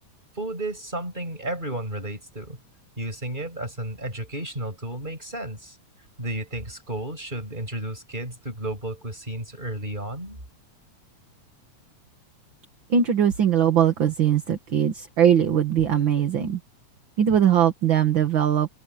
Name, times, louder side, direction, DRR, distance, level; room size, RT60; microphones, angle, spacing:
voice 1, 0.3-2.6 3.0-5.8 6.2-10.4, right 1 dB, 15° right, 7.8 m, -33 dB
voice 2, 12.9-16.6 17.2-18.7, right 9 dB, 45° right, 2.1 m, -20 dB
omnidirectional pair, 3.4 m